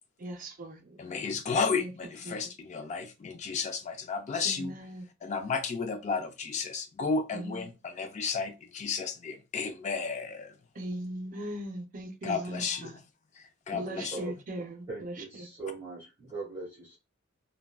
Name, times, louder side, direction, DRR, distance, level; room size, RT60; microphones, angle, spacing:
voice 1, 0.2-1.0 1.8-1.9 2.2-2.3 4.4-5.1 7.3-7.7 10.7-13.0 13.7-15.5, right 1 dB, 40° right, 0.5 m, -39 dB
voice 2, 1.0-4.7 5.2-10.5 12.2-13.0 13.4-14.2, left 5 dB, 35° left, 0.3 m, -33 dB
voice 3, 14.9-17.0, right 3 dB, 15° right, 1.0 m, -40 dB
3.4 x 2.2 x 2.3 m
head